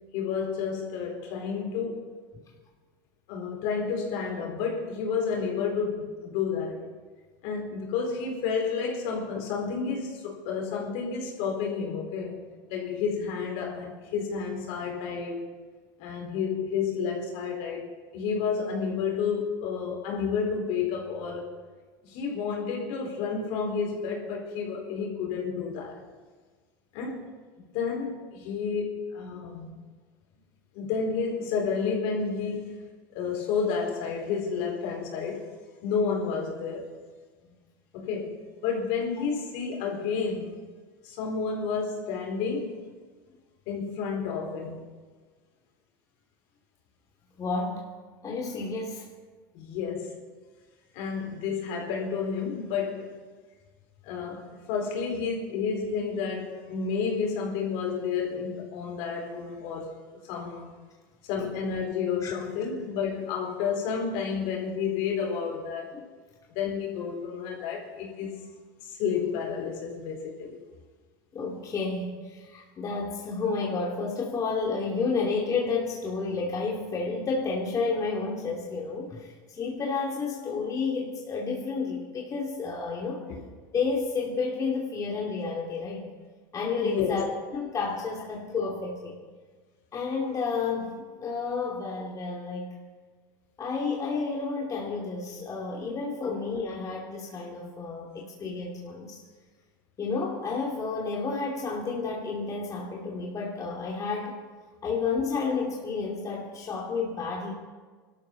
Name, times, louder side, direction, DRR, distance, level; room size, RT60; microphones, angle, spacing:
voice 1, 0.1-2.1 3.3-6.8 7.4-12.4 12.7-15.4 16.0-21.5 22.0-26.0 26.9-29.8 30.7-32.8 33.1-35.5 35.8-36.9 37.9-40.6 41.0-42.8 43.7-44.8 49.5-50.2 50.9-53.2 54.0-59.9 60.3-60.7 61.2-66.0 66.5-68.4 68.8-70.6 83.3-83.4 86.8-87.2 96.2-96.3, left 6 dB, 65° left, 4.7 m, -31 dB
voice 2, 47.4-47.9 48.2-49.1 62.2-62.3 65.9-66.0 71.3-83.2 83.7-86.1 86.5-89.2 89.9-92.7 93.6-99.2 100.0-104.4 104.8-107.5, left 4 dB, 35° left, 2.9 m, -31 dB
25.0 x 13.0 x 4.1 m
hypercardioid pair, 85°, 11 cm